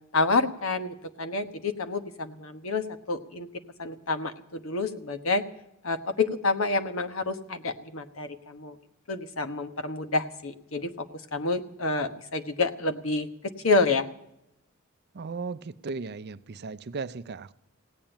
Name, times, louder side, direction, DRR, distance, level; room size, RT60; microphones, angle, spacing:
voice 1, 0.1-3.5 3.8-5.4 5.8-8.7 9.1-13.3 13.6-14.0, left 3 dB, 80° left, 9 dB, 1.2 m, -28 dB
voice 2, 15.1-17.5, right 4 dB, 50° right, 14 dB, 0.5 m, -36 dB
17.0 x 8.9 x 8.9 m, 0.82 s
head